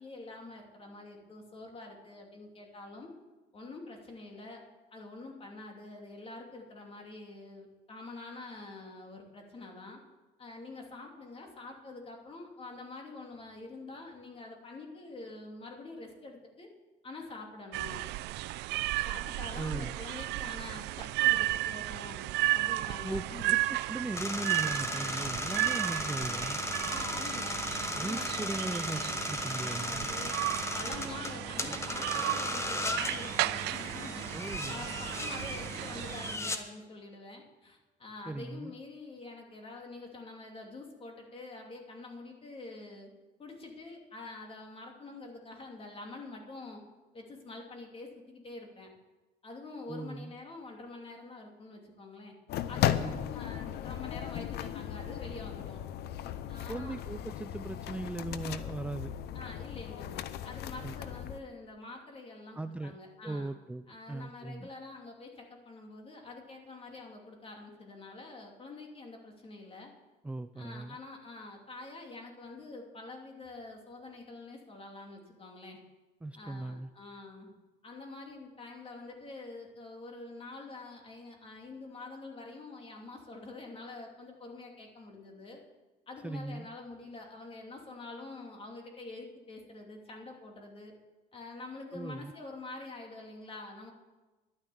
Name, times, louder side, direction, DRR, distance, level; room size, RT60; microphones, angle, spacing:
voice 1, 0.0-3.1 3.5-4.6 4.9-10.0 10.4-16.7 17.0-18.0 19.0-22.2 22.5-23.5 26.9-28.8 29.5-34.2 34.7-43.1 43.4-46.8 47.1-48.9 49.4-52.3 52.7-55.8 56.5-56.9 59.3-63.5 63.9-69.9 70.5-75.8 76.3-77.5 77.8-85.6 86.1-90.9 91.3-93.9, left 2 dB, 35° left, 2 dB, 2.7 m, -46 dB
sound 1, 17.7-36.4, right 17 dB, 85° right, 0.4 m, -34 dB
voice 2, 19.6-20.0 23.0-26.6 27.9-30.1 34.3-34.9 38.3-38.7 49.9-50.3 52.9-53.3 56.7-59.1 60.8-61.0 62.5-62.9 63.2-64.7 70.2-71.0 76.2-76.9 86.2-86.7 91.9-92.3, right 2 dB, 5° right, 10 dB, 0.4 m, -39 dB
sound 2, 24.1-36.6, left 1 dB, 15° left, 1.1 m, -36 dB
sound 3, 52.5-61.4, left 11 dB, 75° left, 0.7 m, -36 dB
11.5 x 9.7 x 7.1 m, 1.2 s
cardioid pair, 110°, 17 cm